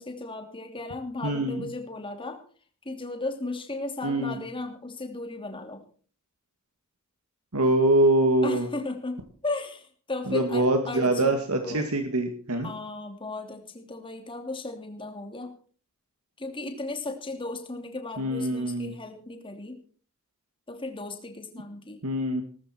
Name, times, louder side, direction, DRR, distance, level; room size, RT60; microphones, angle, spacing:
voice 1, 0.0-2.4 2.8-5.8 8.4-11.9 12.5-15.6 16.4-19.8 20.7-22.0, left 2 dB, 25° left, 5 dB, 2.9 m, -36 dB
voice 2, 1.2-1.7 4.0-4.4 7.5-8.7 10.3-12.7 18.2-18.9 22.0-22.4, right 1 dB, 80° right, 5 dB, 2.0 m, -24 dB
19.5 x 13.5 x 4.4 m, 0.44 s
head